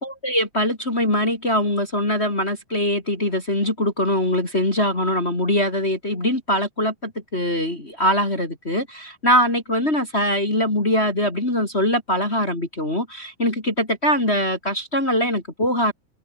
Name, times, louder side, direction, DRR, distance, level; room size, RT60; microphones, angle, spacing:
voice 1, 0.0-15.9, equal, 15° left, 3.9 m, -22 dB
omnidirectional pair, 4.1 m